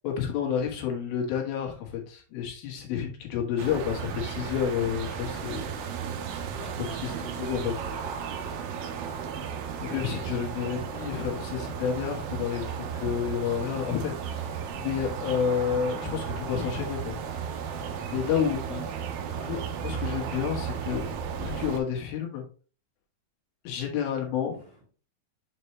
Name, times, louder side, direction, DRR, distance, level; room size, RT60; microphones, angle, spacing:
voice 1, 0.0-5.9 7.0-7.7 9.8-17.2 18.1-18.8 19.4-21.0 21.4-22.4 23.6-24.6, left 8 dB, 85° left, 2 dB, 3.2 m, -30 dB
sound 1, 3.6-21.8, right 7 dB, 90° right, 2.7 m, -34 dB
voice 2, 6.5-9.0 9.7-10.7 18.4-18.8 19.3-19.6 24.6-24.8, right 1 dB, 35° right, -3 dB, 2.1 m, -46 dB
7.0 x 4.4 x 3.1 m, 0.38 s
omnidirectional pair, 4.2 m